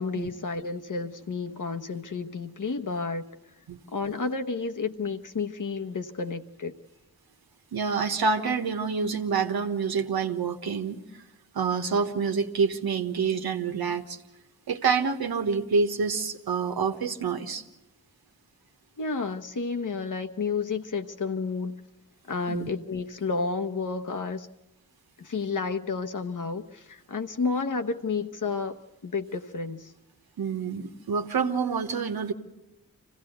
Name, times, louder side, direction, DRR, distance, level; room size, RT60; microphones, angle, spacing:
voice 1, 0.0-3.2 3.9-6.7 19.0-21.8 22.3-24.5 25.2-29.9, left 4 dB, 55° left, 6 dB, 1.2 m, -31 dB
voice 2, 7.7-11.0 11.5-14.2 14.7-17.6 22.5-22.7 30.4-32.3, right 5 dB, 85° right, 5 dB, 1.3 m, -27 dB
25.5 x 16.0 x 8.0 m, 1.0 s
cardioid pair, 45°, 36 cm